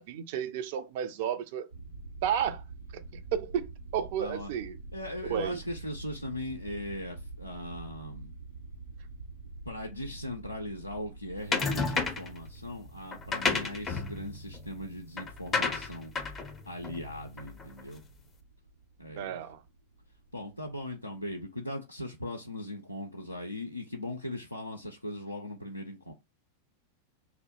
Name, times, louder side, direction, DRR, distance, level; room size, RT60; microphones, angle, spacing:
voice 1, 0.0-1.7 2.2-2.6 3.3-4.8 5.3-5.6 19.1-19.6, right 9 dB, 50° right, 0.3 m, -32 dB
sound 1, 1.7-21.3, right 3 dB, 90° right, 0.8 m, -48 dB
voice 2, 4.2-4.5 4.9-8.3 9.7-16.1 16.7-18.0 19.0-19.4 20.3-26.1, left 1 dB, 85° left, 0.4 m, -39 dB
sound 2, 11.5-12.4 13.1-17.8, left 4 dB, 20° left, 0.4 m, -32 dB
2.1 x 2.0 x 2.8 m
figure-of-eight pair, 90°, 0 cm